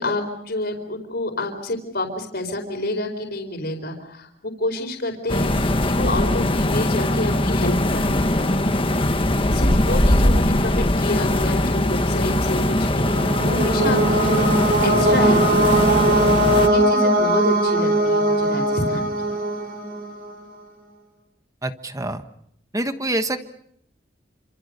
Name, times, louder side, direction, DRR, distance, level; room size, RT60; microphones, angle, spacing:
voice 1, 0.0-8.1 8.4-8.6 9.5-16.1 16.6-19.1, left 1 dB, 55° left, 4 dB, 4.5 m, -28 dB
sound 1, 5.3-16.7, left 1 dB, 30° left, 1.5 m, -20 dB
sound 2, 12.6-20.3, right 1 dB, 55° right, 5.4 m, -20 dB
voice 2, 21.6-22.2 22.7-23.4, right 1 dB, 20° right, 8 dB, 1.3 m, -26 dB
28.5 x 27.0 x 6.8 m, 0.71 s
head